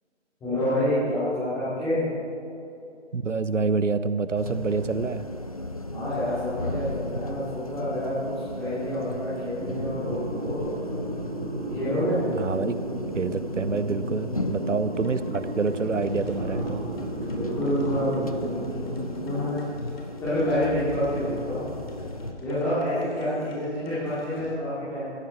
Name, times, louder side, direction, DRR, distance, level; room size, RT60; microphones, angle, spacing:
voice 1, 0.4-2.1 5.9-11.1 11.7-12.2 16.3-18.6 19.2-19.6 20.2-21.7 22.4-25.1, equal, 5° left, -14 dB, 3.2 m, -28 dB
voice 2, 3.1-5.3 12.4-12.8 13.2-16.8, right 4 dB, 85° right, 13 dB, 0.9 m, -27 dB
sound 1, 4.4-22.3, left 1 dB, 30° left, 0.5 m, -37 dB
sound 2, 9.6-19.5, right 1 dB, 60° right, 2.9 m, -34 dB
sound 3, 14.9-24.6, left 2 dB, 50° left, 3.3 m, -43 dB
16.0 x 14.5 x 4.4 m, 2.7 s
figure-of-eight pair, 160°, 36 cm